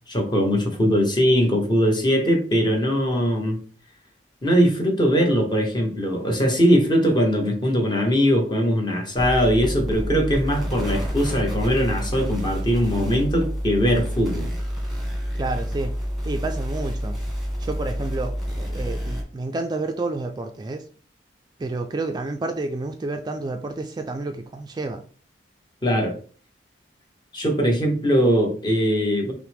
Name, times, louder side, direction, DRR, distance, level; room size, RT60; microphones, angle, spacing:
voice 1, 0.1-3.6 4.4-14.5 25.8-26.1 27.3-29.3, equal, 25° left, 2 dB, 1.0 m, -21 dB
sound 1, 9.2-19.2, equal, ahead, 1.4 m, -28 dB
voice 2, 15.3-15.9 16.2-17.2 17.6-20.9 21.6-25.0, right 2 dB, 25° right, 5 dB, 0.3 m, -30 dB
5.7 x 2.1 x 3.4 m, 0.41 s
head